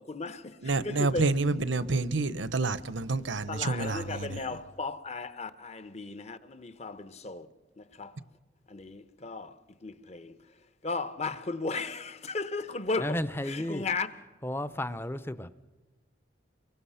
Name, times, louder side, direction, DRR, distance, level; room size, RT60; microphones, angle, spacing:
voice 1, 0.0-1.3 3.5-7.5 7.8-8.2 8.7-14.1, left 3 dB, 35° left, 0.9 m, -36 dB
voice 2, 0.6-4.4, right 3 dB, 80° right, 0.9 m, -28 dB
voice 3, 13.0-13.9 14.4-15.5, left 1 dB, 10° left, 0.6 m, -33 dB
29.5 x 23.0 x 5.7 m
head